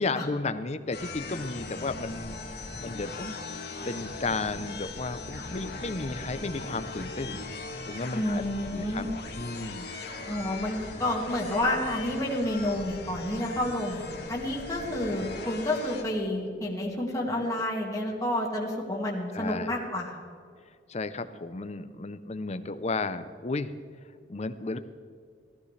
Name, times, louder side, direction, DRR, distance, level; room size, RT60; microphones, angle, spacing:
voice 1, 0.0-2.3 2.8-3.4 3.9-7.4 7.9-8.4 8.7-9.0 9.4-9.9 19.3-19.7 20.9-23.7 24.3-24.8, left 3 dB, 35° left, 11 dB, 0.6 m, -33 dB
sound 1, 0.9-16.0, left 3 dB, 60° left, 1.7 m, -39 dB
voice 2, 8.1-9.1 10.3-20.1, left 1 dB, 20° left, -3 dB, 2.0 m, -30 dB
16.5 x 14.5 x 3.3 m, 2.1 s
head